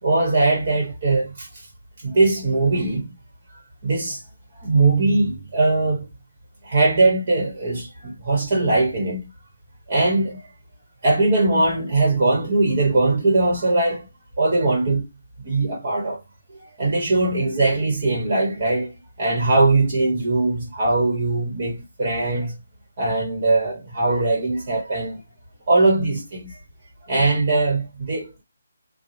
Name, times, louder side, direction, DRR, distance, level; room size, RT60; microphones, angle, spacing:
voice 1, 0.0-1.7 2.0-3.1 3.8-4.2 4.5-6.1 6.6-9.3 9.9-10.4 11.0-14.1 14.4-15.1 15.4-16.2 16.6-22.5 23.0-25.2 25.7-26.6 27.1-28.4, right 2 dB, 35° right, 1.3 m, -21 dB
3.9 x 2.3 x 3.1 m
hypercardioid pair, 170°, 0 cm